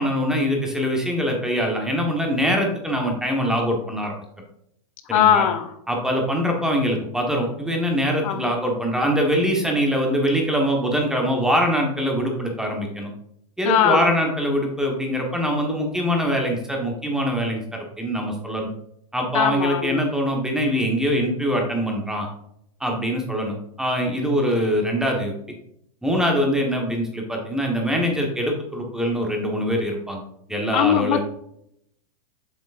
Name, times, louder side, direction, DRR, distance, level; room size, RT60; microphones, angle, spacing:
voice 1, 0.0-4.1 5.1-5.4 5.9-13.1 13.6-18.7 19.1-22.3 22.8-25.3 26.0-30.2 30.5-31.2, equal, 5° right, 1 dB, 1.2 m, -23 dB
voice 2, 5.1-5.7 8.2-8.5 13.6-14.1 19.3-20.0 30.7-31.2, left 9 dB, 60° left, 8 dB, 0.7 m, -20 dB
7.7 x 5.1 x 2.5 m, 0.75 s
hypercardioid pair, 120°, 19 cm